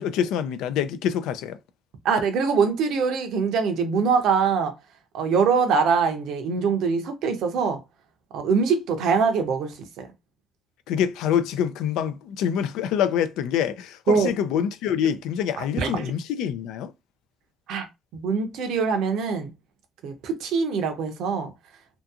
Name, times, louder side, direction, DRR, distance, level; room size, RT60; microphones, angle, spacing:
voice 1, 0.0-1.6 10.9-16.9, left 9 dB, 80° left, 0.3 m, -26 dB
voice 2, 2.0-4.7 5.1-7.8 8.3-10.1 14.1-14.3 15.8-16.1 17.7-17.9 18.1-19.5 20.0-21.5, right 5 dB, 75° right, 0.6 m, -23 dB
2.7 x 2.5 x 2.4 m
supercardioid pair, 65°, 0 cm